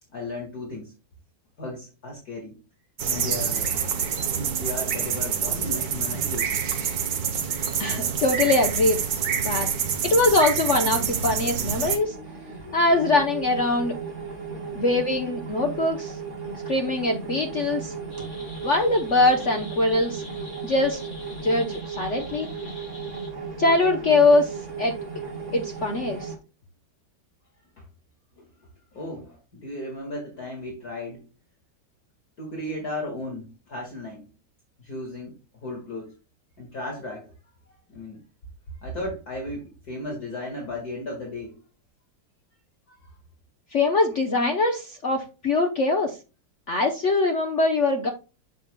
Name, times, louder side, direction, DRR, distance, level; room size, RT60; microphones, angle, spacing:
voice 1, 0.1-0.9 1.6-2.6 3.1-3.9 4.2-6.5 27.8-27.9 28.4-31.2 32.4-34.3 34.8-35.3 35.6-36.1 36.6-37.3 37.9-38.2 38.8-41.6 42.9-43.1, left 1 dB, 45° left, -1 dB, 2.1 m, -35 dB
sound 1, 3.0-12.0, right 7 dB, 55° right, 1.2 m, -27 dB
voice 2, 7.5-9.0 9.4-9.7 10.0-12.2 12.7-14.0 14.7-16.2 16.7-17.9 18.6-20.2 20.6-21.0 21.4-22.5 23.6-24.9 25.5-26.3 43.7-46.2 46.7-48.1, left 2 dB, 65° left, 4 dB, 0.7 m, -22 dB
sound 2, 11.9-26.4, right 5 dB, 35° right, 2.5 m, -35 dB
sound 3, 18.1-23.3, left 2 dB, 25° left, 2.6 m, -45 dB
8.2 x 7.1 x 2.2 m, 0.31 s
omnidirectional pair, 2.3 m